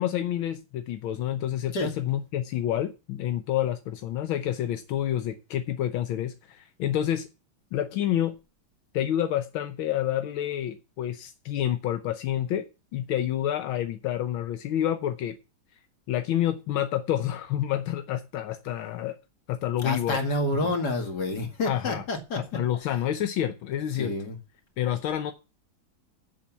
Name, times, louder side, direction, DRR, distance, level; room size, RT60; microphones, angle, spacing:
voice 1, 0.0-7.3 7.7-8.3 8.9-12.6 12.9-15.3 16.1-19.2 19.5-20.2 21.7-22.0 22.4-24.1 24.8-25.3, left 11 dB, 85° left, 1.6 m, -28 dB
voice 2, 19.8-22.9 23.9-24.4, left 1 dB, 55° left, 2.7 m, -29 dB
7.6 x 7.3 x 7.3 m
omnidirectional pair, 2.2 m